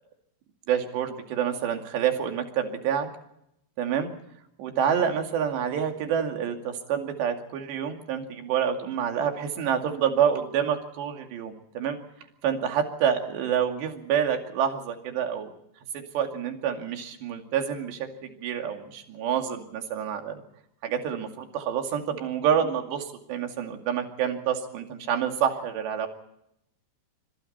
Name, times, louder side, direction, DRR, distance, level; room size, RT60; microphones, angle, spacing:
voice 1, 0.7-3.1 3.8-4.1 4.6-12.0 12.4-15.5 15.9-20.3 20.8-26.1, right 8 dB, 75° right, 4 dB, 4.6 m, -27 dB
26.0 x 25.5 x 4.3 m, 0.78 s
omnidirectional pair, 5.0 m